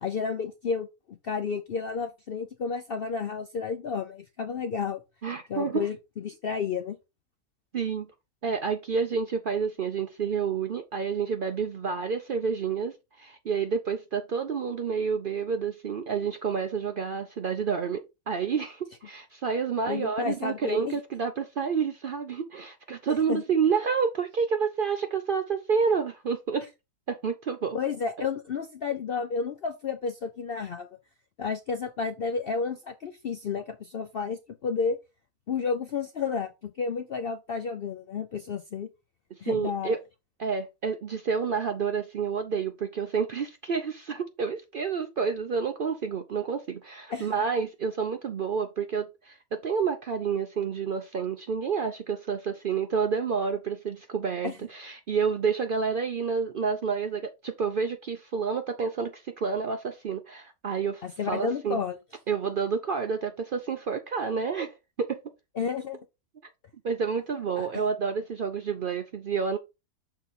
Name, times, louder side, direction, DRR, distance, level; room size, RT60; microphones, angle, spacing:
voice 1, 0.0-5.0 5.5-7.0 19.9-20.9 23.3-23.4 27.7-30.9 31.4-35.0 35.5-38.9 39.4-40.0 47.1-47.3 54.4-54.6 61.0-62.0 65.6-66.0 67.6-67.7, left 5 dB, 75° left, 0.5 m, -31 dB
voice 2, 5.2-5.8 7.7-8.1 8.4-26.7 27.1-27.8 39.4-40.0 40.4-61.8 62.3-65.2 66.8-69.6, right 6 dB, 80° right, 0.4 m, -29 dB
6.5 x 4.1 x 4.1 m
omnidirectional pair, 1.7 m